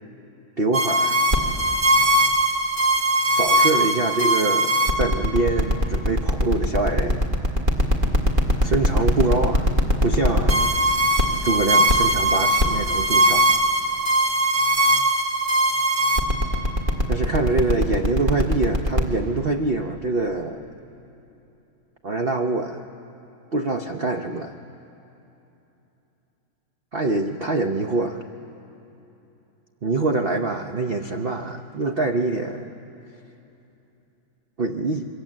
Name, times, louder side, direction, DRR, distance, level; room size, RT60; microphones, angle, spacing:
voice 1, 0.6-1.2 3.3-7.2 8.6-9.7 10.0-11.1 11.4-13.5 17.1-20.7 22.0-22.9 23.5-24.5 26.9-28.2 29.8-32.7 34.6-35.1, right 2 dB, 75° right, 5 dB, 0.5 m, -25 dB
sound 1, 0.7-19.0, equal, 25° right, 1.7 m, -20 dB
26.5 x 23.0 x 7.5 m, 3.0 s
omnidirectional pair, 2.2 m